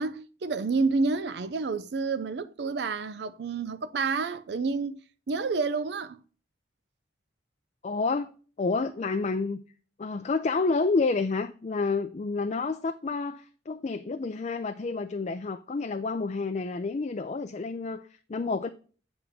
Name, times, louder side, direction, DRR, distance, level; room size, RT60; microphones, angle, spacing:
voice 1, 0.0-5.0 5.3-6.2, right 4 dB, 60° right, 0.4 m, -29 dB
voice 2, 7.8-9.6 10.0-18.7, left 4 dB, 35° left, 0.4 m, -29 dB
8.6 x 3.6 x 6.7 m
head